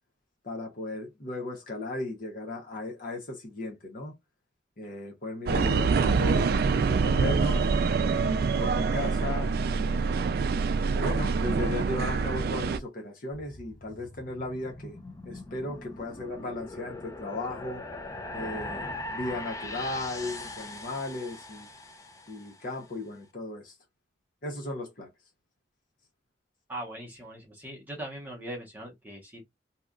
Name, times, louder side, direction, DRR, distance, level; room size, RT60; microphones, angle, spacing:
voice 1, 0.4-4.2 4.8-7.7 8.2-10.1 10.9-15.0 15.2-17.8 18.3-21.7 22.3-23.8 24.4-25.1, left 2 dB, 50° left, 0.8 m, -36 dB
sound 1, 5.5-12.8, right 4 dB, 55° right, 0.3 m, -25 dB
sound 2, 13.3-22.7, left 2 dB, 20° left, 0.5 m, -41 dB
voice 2, 26.7-29.4, right 1 dB, 10° right, 0.8 m, -40 dB
2.8 x 2.4 x 3.6 m
head